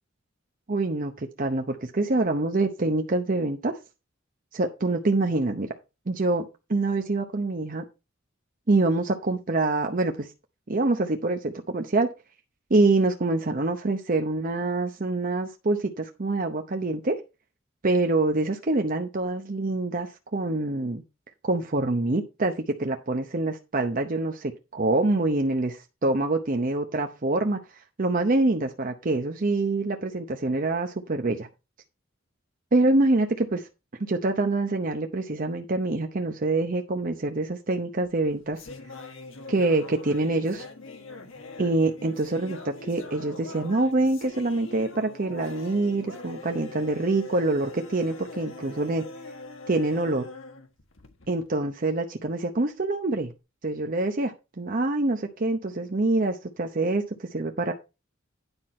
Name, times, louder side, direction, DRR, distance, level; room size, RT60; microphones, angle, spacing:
voice 1, 0.7-3.8 4.5-5.7 6.1-6.4 6.7-7.8 8.7-10.3 10.7-12.1 12.7-17.2 17.8-21.0 21.4-22.5 22.8-27.6 28.0-31.5 32.7-33.7 34.0-38.6 39.5-40.7 41.6-49.0 49.7-50.3 51.3-53.3 53.6-57.7, right 2 dB, 45° right, 5 dB, 0.8 m, -25 dB
sound 1, 38.0-51.5, left 2 dB, 75° left, 1.4 m, -43 dB
9.7 x 6.0 x 4.3 m, 0.27 s
head